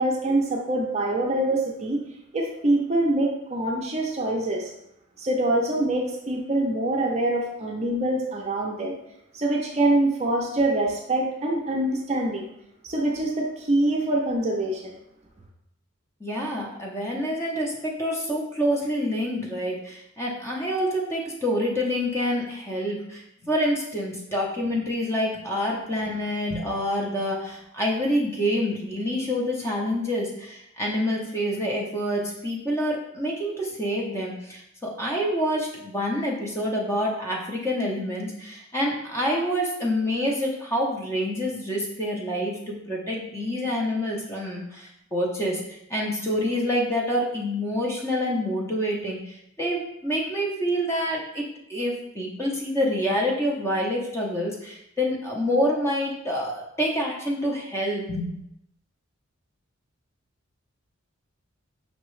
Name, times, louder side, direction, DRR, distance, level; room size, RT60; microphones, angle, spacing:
voice 1, 0.0-2.0 2.3-4.7 5.2-9.0 9.3-12.4 12.8-14.9, right 1 dB, 30° right, 0 dB, 0.5 m, -24 dB
voice 2, 16.2-51.4 51.7-58.4, equal, 15° left, -3 dB, 0.7 m, -27 dB
5.3 x 2.9 x 3.1 m, 0.79 s
head